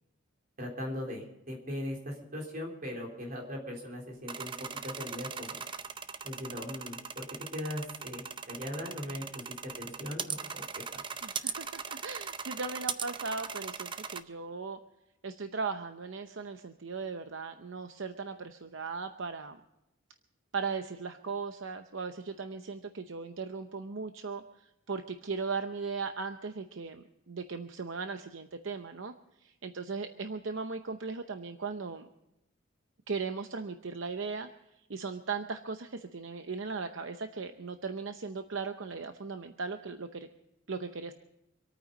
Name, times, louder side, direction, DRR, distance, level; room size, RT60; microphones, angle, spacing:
voice 1, 0.6-4.5 4.8-5.6 6.2-7.3 7.5-9.4 9.8-10.6 10.9-11.0, left 1 dB, 45° right, 0 dB, 3.9 m, -39 dB
sound 1, 4.3-14.2, right 6 dB, 25° right, 0.6 m, -39 dB
voice 2, 11.2-14.8 15.2-19.6 20.5-24.4 24.9-29.1 29.4-32.1 33.1-34.5 34.9-40.3 40.7-41.1, right 4 dB, 70° right, 7 dB, 0.8 m, -38 dB
26.0 x 9.2 x 5.3 m, 0.88 s
head